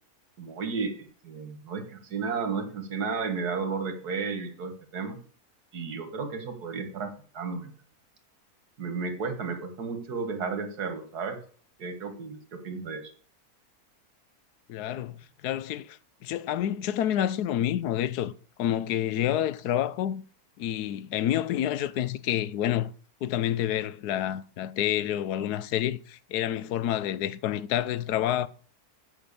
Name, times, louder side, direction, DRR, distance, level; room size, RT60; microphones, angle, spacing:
voice 1, 0.4-5.2 5.7-7.7 8.8-11.4 11.8-13.0, right 5 dB, 90° right, 2.2 m, -33 dB
voice 2, 14.7-18.3 18.6-20.2 20.6-22.9 23.2-28.5, left 11 dB, 90° left, 1.2 m, -28 dB
8.6 x 5.9 x 7.0 m
omnidirectional pair, 1.6 m